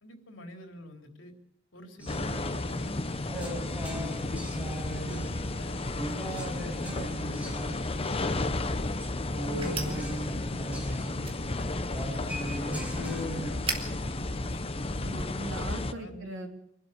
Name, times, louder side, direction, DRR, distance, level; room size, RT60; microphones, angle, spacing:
voice 1, 0.0-1.3 1.7-4.0 4.6-7.6 10.7-11.7 12.1-15.3 15.9-16.5, left 1 dB, 80° left, 4 dB, 3.5 m, -48 dB
sound 1, 2.0-13.5, equal, 10° right, 5.1 m, -38 dB
sound 2, 2.1-15.9, left 2 dB, 30° left, 0.9 m, -33 dB
voice 2, 9.5-10.0 15.0-16.5, right 1 dB, 85° right, 2 dB, 3.7 m, -39 dB
sound 3, 9.6-15.4, right 4 dB, 30° right, 2.8 m, -43 dB
25.5 x 12.5 x 8.2 m, 0.72 s
head